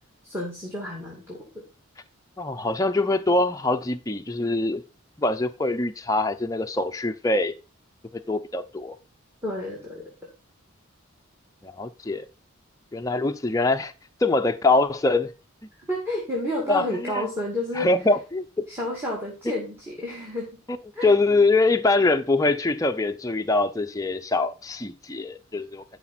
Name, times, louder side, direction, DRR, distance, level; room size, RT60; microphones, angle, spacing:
voice 1, 0.2-1.7 9.4-10.1 15.9-17.9 18.7-20.5 20.9-21.1, left 1 dB, 10° right, 2.2 m, -30 dB
voice 2, 2.4-4.8 5.2-7.5 8.3-8.9 11.6-12.2 12.9-13.9 14.2-15.3 16.7-17.3 17.7-18.7 20.7-20.8 21.0-25.8, left 2 dB, 15° left, 0.6 m, -23 dB
11.5 x 5.0 x 4.3 m
head